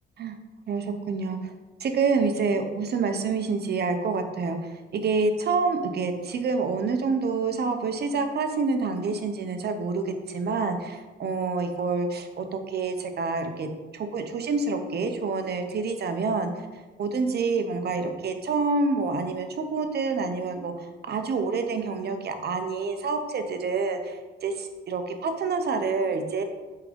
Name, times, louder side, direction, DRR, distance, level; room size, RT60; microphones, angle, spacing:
voice 1, 0.7-1.5 1.8-13.7 13.9-16.7 17.0-26.4, right 4 dB, 55° right, 7 dB, 0.9 m, -27 dB
7.4 x 3.7 x 5.2 m, 1.2 s
cardioid pair, 90°, 20 cm